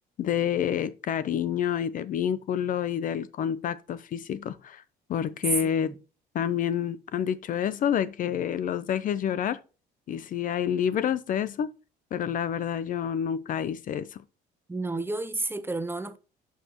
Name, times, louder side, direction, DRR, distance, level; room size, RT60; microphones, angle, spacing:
voice 1, 0.2-4.8 5.1-5.9 6.3-9.6 10.1-11.7 12.1-14.2, left 9 dB, 50° left, 0.6 m, -28 dB
voice 2, 5.6-6.0 14.7-16.2, right 2 dB, 15° right, 0.8 m, -32 dB
11.0 x 5.7 x 3.0 m
cardioid pair, 110°, 17 cm